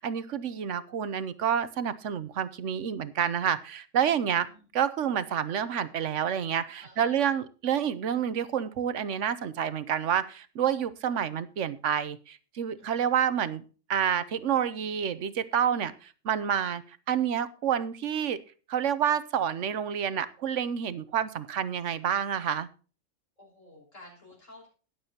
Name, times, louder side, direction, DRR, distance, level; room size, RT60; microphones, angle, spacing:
voice 1, 0.0-4.5 4.7-13.6 13.9-18.4 18.7-22.7, right 8 dB, 75° right, 15 dB, 1.1 m, -28 dB
voice 2, 4.0-4.7 6.8-7.4 12.8-13.2 23.4-24.7, left 1 dB, 90° left, -2 dB, 7.0 m, -53 dB
21.0 x 7.2 x 2.8 m, 0.36 s
omnidirectional pair, 1.3 m